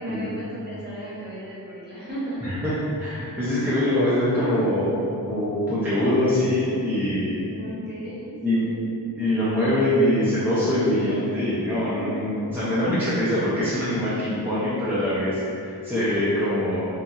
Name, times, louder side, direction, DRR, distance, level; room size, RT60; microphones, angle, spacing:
voice 1, 0.0-2.4 7.4-8.8 11.9-12.0 12.4-12.5, right 1 dB, 25° right, -10 dB, 1.0 m, -35 dB
voice 2, 2.4-7.4 8.4-8.7 9.2-16.9, left 1 dB, 5° right, -12 dB, 0.6 m, -23 dB
2.8 x 2.5 x 2.4 m, 2.6 s
wide cardioid pair, 75°, 41 cm